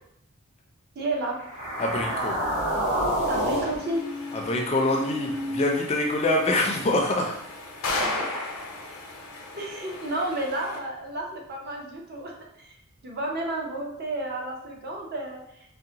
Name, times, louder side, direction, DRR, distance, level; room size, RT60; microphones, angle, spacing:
voice 1, 1.0-1.4 3.3-4.0 8.0-8.4 9.6-12.7 13.0-15.4, right 2 dB, 45° right, 0 dB, 0.6 m, -31 dB
sound 1, 1.4-5.8, equal, 30° right, 1.0 m, -29 dB
voice 2, 1.8-2.4 4.3-7.3, left 2 dB, 30° left, 0 dB, 0.4 m, -25 dB
sound 2, 3.7-10.8, left 2 dB, 85° left, 0.6 m, -36 dB
3.7 x 2.1 x 2.8 m, 0.78 s
head